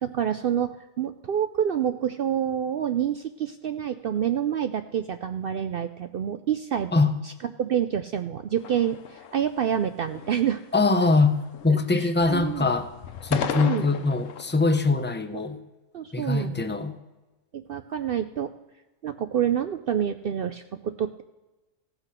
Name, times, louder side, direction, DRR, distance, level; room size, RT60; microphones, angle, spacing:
voice 1, 0.0-0.7 1.0-6.9 7.2-7.3 7.6-10.6 11.7-12.7 13.5-13.9 15.9-16.6 17.5-18.5 19.0-21.2, right 9 dB, 65° right, 9 dB, 0.6 m, -27 dB
sound 1, 8.6-9.7 10.1-10.6 10.8-11.8 12.1-14.7, left 8 dB, 75° left, 1.1 m, -36 dB
voice 2, 10.7-11.4 11.6-12.9 13.2-15.6 16.1-16.9, left 3 dB, 20° left, 9 dB, 0.3 m, -22 dB
16.0 x 6.0 x 5.8 m, 1.1 s
omnidirectional pair, 1.4 m